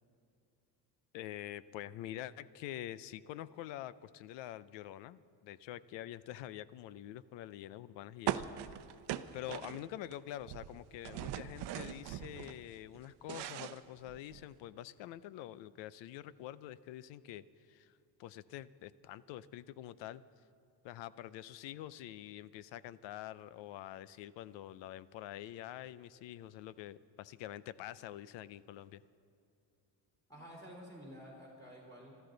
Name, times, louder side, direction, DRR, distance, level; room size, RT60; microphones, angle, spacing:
voice 1, 1.1-8.8 9.3-20.2 20.8-29.0, left 13 dB, 85° left, 17 dB, 0.6 m, -46 dB
sound 1, 8.3-10.1 10.4-12.6 13.0-14.5, right 12 dB, 70° right, 0.7 m, -40 dB
voice 2, 30.3-32.2, equal, 10° left, -5 dB, 3.6 m, -51 dB
26.0 x 13.5 x 3.9 m, 2.7 s
cardioid pair, 150°, 43 cm